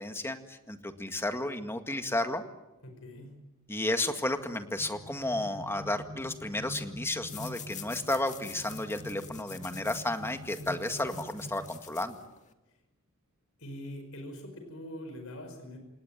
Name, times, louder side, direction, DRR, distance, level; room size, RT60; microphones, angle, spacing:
voice 1, 0.0-2.4 3.7-12.2, left 1 dB, 10° left, 7 dB, 1.9 m, -32 dB
voice 2, 2.8-3.3 13.6-15.8, left 1 dB, 75° left, 6 dB, 5.1 m, -43 dB
sound 1, 4.4-11.8, equal, 85° right, 6.1 m, -46 dB
sound 2, 7.2-12.5, left 9 dB, 35° left, 1.9 m, -48 dB
28.0 x 18.5 x 8.9 m, 0.99 s
head